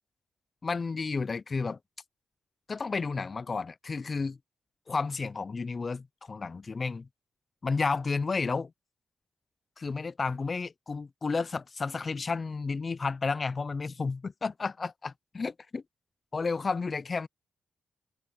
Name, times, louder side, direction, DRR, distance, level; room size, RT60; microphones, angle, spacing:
voice 1, 0.6-1.8 2.7-4.4 4.9-7.1 7.6-8.7 9.8-15.8 16.3-17.3, left 4 dB, 40° left, 0.4 m, -32 dB
open air
cardioid pair, 70°, 0 cm